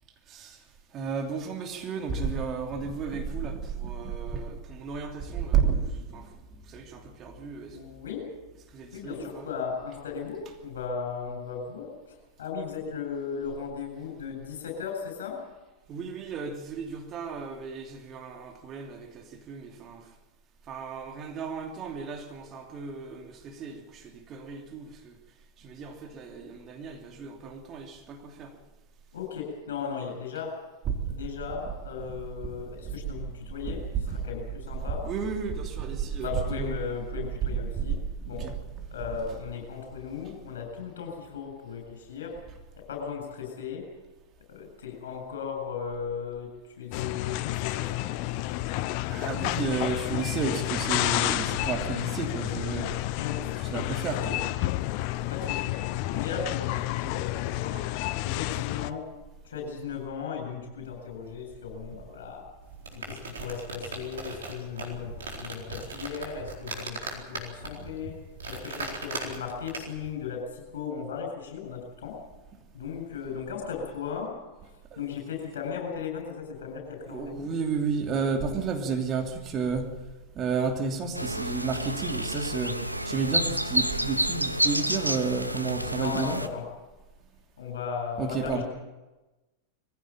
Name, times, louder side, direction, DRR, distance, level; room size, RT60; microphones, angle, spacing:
voice 1, 0.9-6.3 6.7-7.8 8.7-9.4 15.9-20.0 20.7-25.1 25.6-28.5 30.9-31.1 32.8-32.9 33.7-34.2 35.0-36.3 37.5-37.9 38.4-38.5 48.7-52.9 53.7-54.4 74.9-75.0 77.1-79.9 80.3-82.8 83.0-86.4 88.2-88.6, right 5 dB, 30° right, 3 dB, 3.0 m, -32 dB
voice 2, 7.7-8.4 8.9-15.4 28.5-28.6 29.1-30.6 31.0-35.1 36.2-38.0 38.3-38.5 38.9-42.4 42.9-43.9 44.5-48.1 53.2-53.5 54.1-54.5 55.3-57.2 57.5-57.8 58.2-59.1 59.4-62.4 63.0-68.1 68.5-72.2 72.7-74.3 74.6-77.5 85.9-86.7 87.6-88.6, left 6 dB, 65° left, 3 dB, 8.0 m, -36 dB
sound 1, 46.9-58.9, left 17 dB, 45° left, 0.8 m, -30 dB
sound 2, 62.6-70.1, right 3 dB, 65° right, 4.2 m, -39 dB
sound 3, 81.1-86.5, right 1 dB, 90° right, 1.1 m, -29 dB
22.0 x 16.0 x 9.0 m, 1.1 s
figure-of-eight pair, 90°, 0 cm